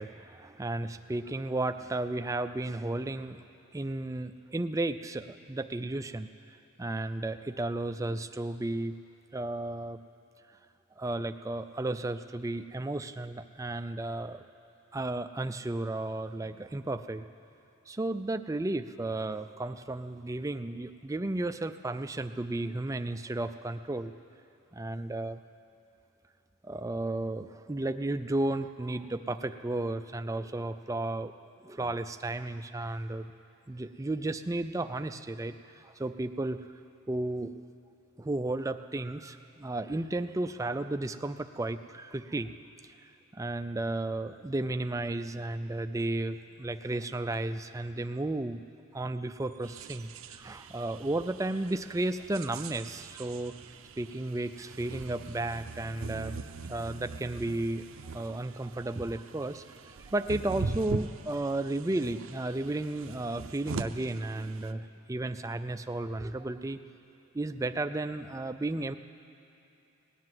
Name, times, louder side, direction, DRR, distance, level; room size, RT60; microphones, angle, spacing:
voice 1, 0.0-3.4 3.7-9.0 9.3-10.0 11.0-14.4 14.9-17.2 17.9-24.1 24.7-25.4 26.6-31.3 31.6-33.3 33.7-36.6 37.1-37.5 38.2-42.5 42.8-42.9 43.3-48.6 48.9-53.5 54.0-57.8 58.1-66.8 67.3-69.0, right 2 dB, 15° right, 10 dB, 0.3 m, -33 dB
sound 1, 49.6-64.7, right 3 dB, 65° right, 0.5 m, -42 dB
18.0 x 9.6 x 7.6 m, 2.8 s
head